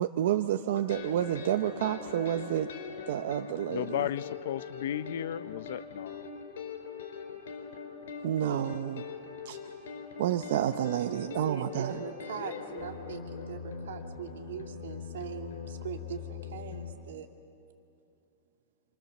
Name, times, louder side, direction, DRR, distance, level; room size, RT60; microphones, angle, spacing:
voice 1, 0.0-2.7 3.1-4.1 8.2-9.0 9.5-9.6 10.2-12.0, right 11 dB, 65° right, 7 dB, 0.8 m, -29 dB
sound 1, 0.7-16.9, left 6 dB, 90° left, 4.5 m, -42 dB
voice 2, 3.7-6.3, left 10 dB, 65° left, 15 dB, 0.8 m, -34 dB
voice 3, 11.0-17.3, right 8 dB, 85° right, 4 dB, 2.8 m, -41 dB
28.0 x 26.5 x 7.3 m, 2.6 s
supercardioid pair, 165°, 0 cm